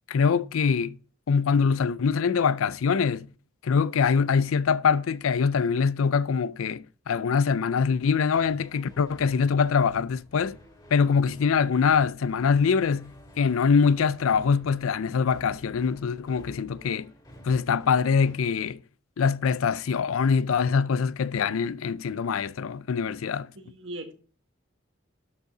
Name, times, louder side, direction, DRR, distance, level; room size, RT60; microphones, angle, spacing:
voice 1, 0.1-0.9 1.3-3.3 3.6-10.6 10.9-13.1 13.4-17.1 17.4-18.8 19.2-23.5, left 6 dB, 85° left, 0.4 m, -24 dB
sound 1, 8.1-18.3, equal, 20° left, 2.5 m, -51 dB
voice 2, 23.6-24.1, right 1 dB, 65° right, 1.6 m, -39 dB
12.0 x 5.4 x 3.8 m
head